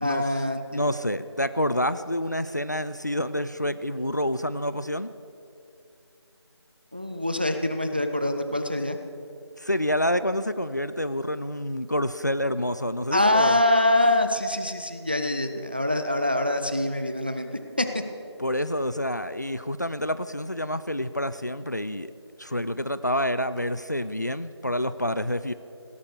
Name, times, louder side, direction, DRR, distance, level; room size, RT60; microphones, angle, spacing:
voice 1, 0.0-0.8 6.9-9.0 13.1-17.5 17.8-17.9, left 1 dB, 20° right, 8 dB, 0.5 m, -24 dB
voice 2, 0.7-5.1 9.6-13.6 18.4-22.1 22.4-25.5, left 1 dB, 40° left, 14 dB, 0.4 m, -28 dB
17.0 x 12.0 x 6.7 m, 2.6 s
figure-of-eight pair, 175°, 15 cm